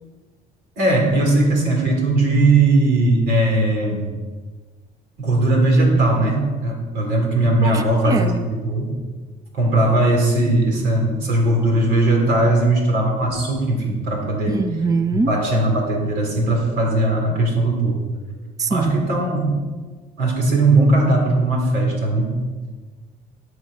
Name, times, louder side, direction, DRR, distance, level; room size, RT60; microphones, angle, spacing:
voice 1, 0.8-4.1 5.2-8.9 9.5-14.6 15.1-18.0 18.7-19.5 20.2-22.4, right 2 dB, 85° right, 0 dB, 4.3 m, -18 dB
voice 2, 7.6-8.4 14.5-15.4 18.6-19.1, right 4 dB, 20° right, 9 dB, 0.6 m, -23 dB
18.5 x 6.5 x 5.9 m, 1.4 s
cardioid pair, 110°, 17 cm